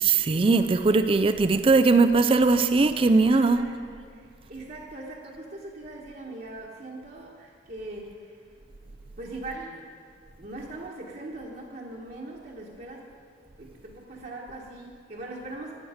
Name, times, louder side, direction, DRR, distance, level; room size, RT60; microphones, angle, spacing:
voice 1, 0.0-3.6, right 3 dB, 30° right, 10 dB, 0.3 m, -20 dB
voice 2, 2.8-8.4 9.2-9.9 10.4-13.1 13.6-15.7, right 2 dB, 50° right, -4 dB, 1.2 m, -41 dB
12.5 x 9.4 x 5.0 m, 2.3 s
head